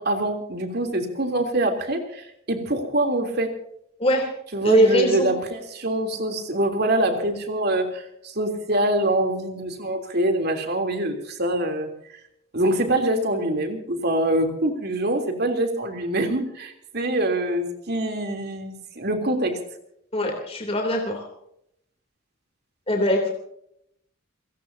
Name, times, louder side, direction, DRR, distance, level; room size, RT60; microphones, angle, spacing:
voice 1, 0.0-3.5 4.5-11.9 12.5-19.6, right 1 dB, 50° right, 4 dB, 3.4 m, -24 dB
voice 2, 4.6-5.3 20.1-21.3 22.9-23.3, equal, 25° left, 1 dB, 3.2 m, -21 dB
29.5 x 17.0 x 2.8 m, 0.74 s
head